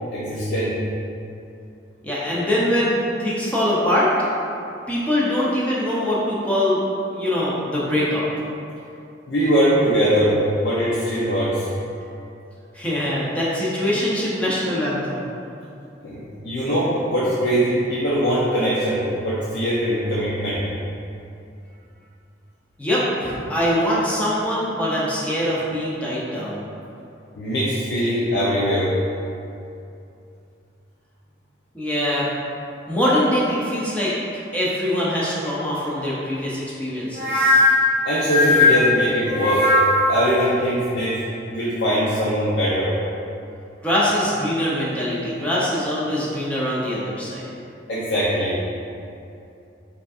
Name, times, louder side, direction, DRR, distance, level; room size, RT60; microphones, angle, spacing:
voice 1, 0.1-0.8 9.3-11.7 16.0-20.6 27.4-28.9 38.1-39.6 40.1-41.2 41.5-42.9 47.9-48.6, equal, 60° left, -9 dB, 0.5 m, -21 dB
voice 2, 2.0-4.1 4.9-6.8 7.1-8.2 12.7-15.2 22.8-26.6 31.7-32.3 32.9-34.1 34.5-37.6 43.8-47.4, left 1 dB, 5° left, -7 dB, 0.6 m, -23 dB
sound 1, 37.1-40.2, left 2 dB, 30° right, 1.1 m, -18 dB
5.0 x 2.7 x 2.4 m, 2.6 s
head